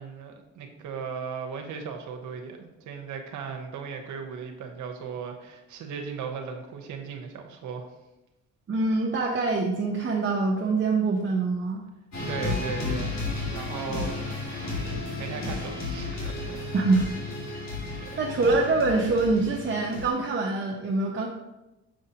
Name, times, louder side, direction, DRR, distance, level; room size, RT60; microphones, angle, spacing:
voice 1, 0.0-7.9 12.3-16.6 18.0-18.2, right 6 dB, 75° right, 3 dB, 1.0 m, -37 dB
voice 2, 8.7-11.8 16.7-17.1 18.2-21.3, right 3 dB, 40° right, -2 dB, 0.8 m, -24 dB
sound 1, 12.1-20.1, left 3 dB, 60° left, 2.3 m, -33 dB
6.3 x 6.0 x 2.8 m, 0.97 s
cardioid pair, 90°, 30 cm